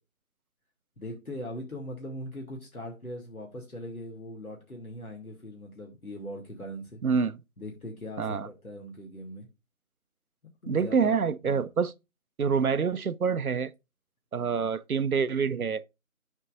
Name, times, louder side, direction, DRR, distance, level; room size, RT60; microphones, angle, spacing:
voice 1, 1.0-7.0 7.6-9.5 10.6-11.1 11.4-11.7, left 1 dB, 90° left, 2.4 m, -40 dB
voice 2, 7.0-7.4 8.2-8.5 10.7-11.9 12.4-13.7 14.3-15.8, right 6 dB, 85° right, 0.7 m, -26 dB
13.0 x 4.5 x 2.5 m
figure-of-eight pair, 160°, 42 cm